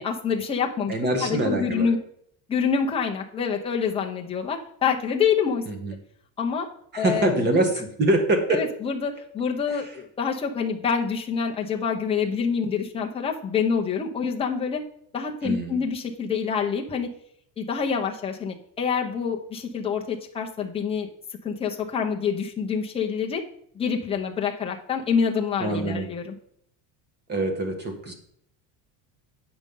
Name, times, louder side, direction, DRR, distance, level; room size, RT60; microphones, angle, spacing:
voice 1, 0.0-0.9 1.2-2.0 2.5-5.6 6.4-6.7 7.0-7.6 8.5-14.8 15.1-17.1 17.6-21.1 21.4-23.4 23.7-26.3, left 6 dB, 15° left, 0 dB, 0.7 m, -26 dB
voice 2, 0.9-1.9 5.7-5.9 6.9-8.6 9.7-9.9 15.4-15.8 25.6-26.1 27.3-28.1, right 2 dB, 20° right, 5 dB, 1.3 m, -24 dB
8.9 x 5.2 x 5.4 m, 0.66 s
cardioid pair, 170°, 45 cm